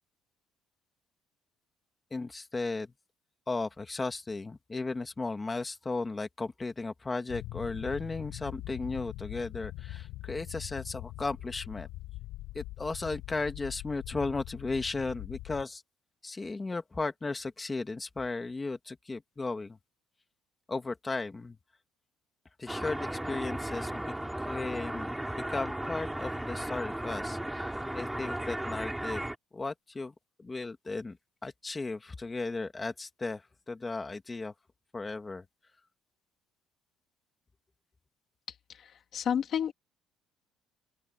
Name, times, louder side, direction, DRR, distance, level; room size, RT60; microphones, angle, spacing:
voice 1, 2.1-2.9 3.5-11.9 12.5-15.8 16.2-19.8 20.7-21.6 22.6-24.1 24.5-29.2 29.5-31.2 31.4-34.5 34.9-35.5, left 3 dB, 15° left, 1.8 m, -35 dB
sound 1, 7.3-15.6, left 17 dB, 85° left, 4.1 m, -42 dB
sound 2, 22.7-29.4, right 1 dB, 5° right, 4.5 m, -35 dB
voice 2, 38.7-39.7, left 8 dB, 40° left, 1.4 m, -31 dB
open air
cardioid pair, 180°, 0 cm